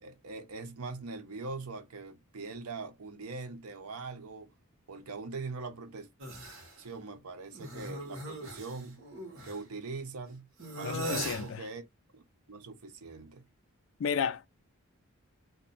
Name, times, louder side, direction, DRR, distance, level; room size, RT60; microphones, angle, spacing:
voice 1, 0.0-4.5 4.9-6.1 6.8-9.0 9.4-10.5 10.8-11.8 12.1-12.2 12.5-13.4, right 3 dB, 85° right, 0.7 m, -42 dB
sound 1, 6.2-6.7 7.5-9.6 10.6-11.5, right 1 dB, 65° right, 1.2 m, -39 dB
voice 2, 10.8-11.7 14.0-14.5, left 7 dB, 60° left, 0.3 m, -32 dB
2.6 x 2.2 x 4.0 m
head